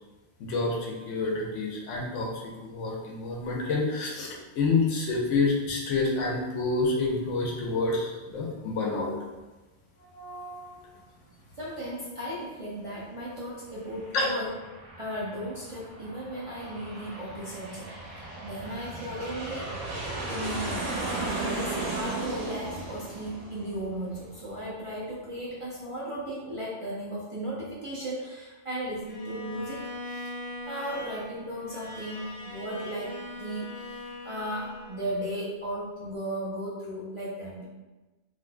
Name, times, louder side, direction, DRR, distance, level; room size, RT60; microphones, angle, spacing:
voice 1, 0.4-9.1 10.1-10.9 14.1-14.3, left 3 dB, 85° left, -2 dB, 1.1 m, -28 dB
voice 2, 11.6-14.5 15.0-17.9 18.4-19.7 20.3-20.9 21.2-30.3 30.7-37.7, right 1 dB, 40° right, -7 dB, 0.5 m, -36 dB
Aircraft, 13.6-24.8, right 2 dB, 75° right, 1.1 m, -36 dB
Bowed string instrument, 29.0-35.3, left 1 dB, 50° left, 0.9 m, -41 dB
3.8 x 2.7 x 2.2 m, 1.1 s
omnidirectional pair, 1.2 m